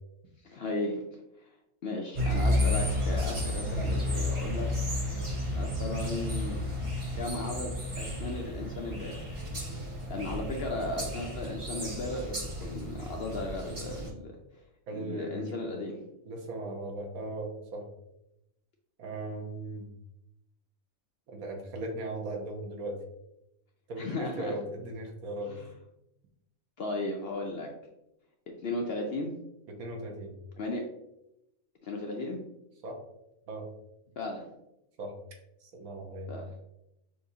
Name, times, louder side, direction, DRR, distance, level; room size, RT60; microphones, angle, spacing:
voice 1, 0.4-1.0 1.8-4.7 5.5-6.6 7.1-9.3 10.1-14.4 14.9-16.0 24.0-24.6 25.5-25.7 26.8-27.7 28.5-29.3 30.6-30.8 31.8-32.4 34.2-34.5 36.3-36.5, left 2 dB, 65° left, 1 dB, 0.6 m, -35 dB
sound 1, 2.2-14.1, left 1 dB, 25° right, 0.8 m, -32 dB
voice 2, 14.9-15.7 16.3-17.9 19.0-19.9 21.3-23.0 23.9-25.5 29.7-30.3 32.8-33.0 33.5-33.7 35.0-35.1 35.6-36.4, right 2 dB, 85° right, 1 dB, 1.3 m, -38 dB
6.1 x 2.6 x 2.7 m, 0.88 s
omnidirectional pair, 1.4 m